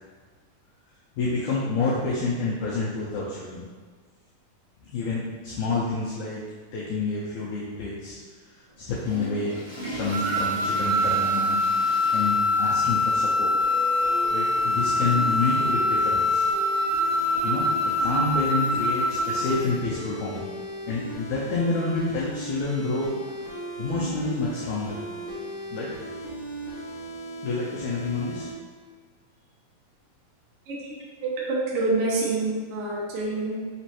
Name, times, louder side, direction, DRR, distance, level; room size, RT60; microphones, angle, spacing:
voice 1, 1.2-3.7 4.8-6.4 6.7-8.2 8.9-9.6 9.9-13.5 14.3-16.4 17.4-17.6 18.0-20.5 20.9-23.1 23.8-24.9 25.7-25.9 27.4-28.5, left 3 dB, 85° left, -6 dB, 1.7 m, -28 dB
Water / Toilet flush, 8.7-13.7 14.0-14.1 14.8-14.9 16.2-16.3, equal, 55° right, 1.0 m, -38 dB
sound 1, 10.1-19.7, left 2 dB, 70° right, 1.7 m, -24 dB
sound 2, 13.6-28.5, equal, 65° left, 2.4 m, -37 dB
voice 2, 31.2-33.7, right 3 dB, 90° right, -5 dB, 1.2 m, -27 dB
6.0 x 3.0 x 2.9 m, 1.5 s
omnidirectional pair, 4.1 m